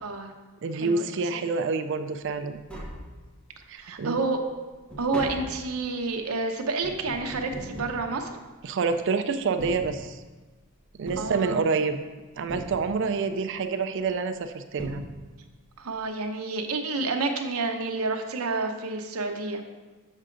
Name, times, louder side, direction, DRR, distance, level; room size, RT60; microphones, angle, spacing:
voice 1, 0.0-0.3 0.7-1.4 3.7-4.4 5.0-8.4 11.2-11.6 15.8-19.6, right 3 dB, 80° right, 4 dB, 0.8 m, -29 dB
voice 2, 0.6-2.6 3.7-4.2 8.6-10.2 11.0-12.0 12.3-15.0, right 4 dB, 60° right, 9 dB, 0.4 m, -27 dB
Tap, 2.5-3.6 4.1-8.8 9.4-10.5 11.1-12.0 12.5-13.3 14.3-14.4 14.8-15.6 15.9-16.0, equal, 5° left, 1.1 m, -41 dB
6.6 x 6.4 x 3.8 m, 1.2 s
head